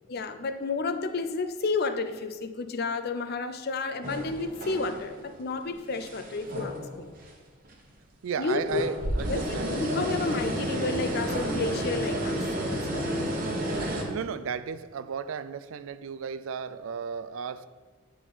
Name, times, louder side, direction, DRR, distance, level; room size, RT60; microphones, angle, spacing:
voice 1, 0.1-7.1 8.4-8.8 9.3-13.2, left 3 dB, 45° left, 0.5 m, -31 dB
sound 1, 4.0-5.3 5.7-7.3 7.6-7.7 8.5-14.0, right 1 dB, 40° right, 1.1 m, -31 dB
voice 2, 8.2-9.9 14.1-17.7, right 6 dB, 70° right, 0.3 m, -34 dB
9.8 x 4.6 x 4.1 m
head